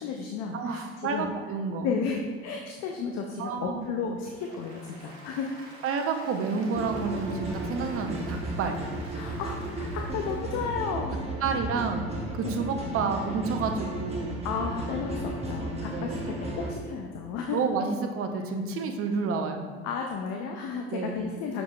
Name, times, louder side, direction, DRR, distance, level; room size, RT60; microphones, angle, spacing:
voice 1, 0.0-1.3 1.8-5.5 9.1-11.3 12.4-12.6 14.4-17.6 19.8-21.6, left 5 dB, 55° left, 1 dB, 0.5 m, -33 dB
voice 2, 0.5-1.9 3.4-3.9 5.8-8.8 11.4-12.1 12.3-14.4 15.9-16.3 17.5-19.7 20.9-21.2, right 4 dB, 45° right, 5 dB, 0.6 m, -30 dB
Applause, 4.2-11.0, right 2 dB, 85° right, 1.0 m, -49 dB
sound 1, 6.7-16.7, right 2 dB, 20° right, 1.0 m, -34 dB
6.0 x 3.8 x 2.3 m, 1.5 s
hypercardioid pair, 60°, 32 cm